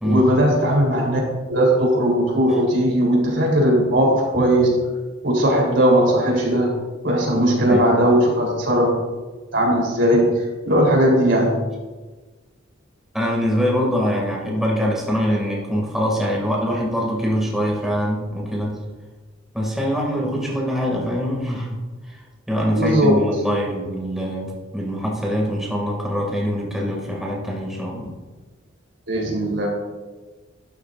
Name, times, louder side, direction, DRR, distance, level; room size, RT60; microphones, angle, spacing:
voice 1, 0.0-1.2 1.5-4.7 5.2-6.7 7.0-8.9 9.5-11.6 22.7-23.2 29.1-29.7, equal, 70° right, -2 dB, 3.6 m, -18 dB
voice 2, 7.7-8.0 13.1-18.8 19.5-21.8 22.1-22.2 22.5-28.1, equal, ahead, -3 dB, 2.3 m, -23 dB
12.0 x 11.5 x 2.6 m, 1.3 s
head